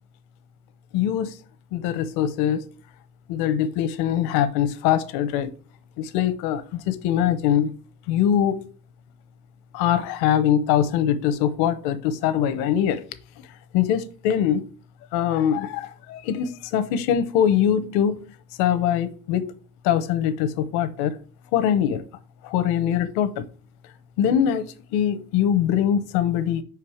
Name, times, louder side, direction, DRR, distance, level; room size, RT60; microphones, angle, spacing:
voice 1, 0.9-1.3 1.7-2.6 3.3-5.5 6.0-7.7 8.1-8.6 9.7-13.0 13.7-14.6 15.1-18.2 18.6-19.4 19.8-21.1 21.5-22.0 22.4-23.4 24.2-26.6, left 9 dB, 80° left, 0.8 m, -22 dB
5.2 x 4.7 x 4.8 m
cardioid pair, 130°, 37 cm